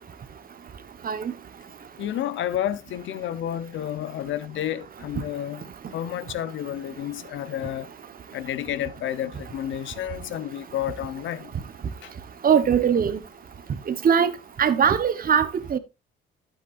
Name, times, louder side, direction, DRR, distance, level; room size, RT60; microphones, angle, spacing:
voice 1, 2.0-5.6 5.9-7.9 8.3-11.5, left 11 dB, 75° left, 0.9 m, -30 dB
voice 2, 12.4-13.2 13.9-15.8, right 7 dB, 45° right, 1.2 m, -21 dB
11.5 x 8.4 x 2.6 m
cardioid pair, 90°, 20 cm